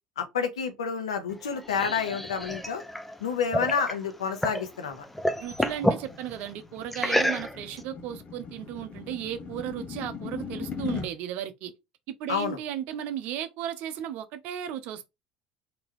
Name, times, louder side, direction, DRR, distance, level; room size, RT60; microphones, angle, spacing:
voice 1, 0.2-2.8 3.2-5.0 12.3-12.6, left 6 dB, 85° left, 0.9 m, -29 dB
sound 1, 1.3-4.7 5.0-6.1 6.9-7.8, equal, 5° left, 0.7 m, -29 dB
sound 2, 4.6-11.1, left 6 dB, 45° left, 1.1 m, -40 dB
voice 2, 5.4-11.7 12.2-15.1, right 10 dB, 60° right, 0.7 m, -35 dB
3.7 x 2.9 x 3.2 m
hypercardioid pair, 70°, 3 cm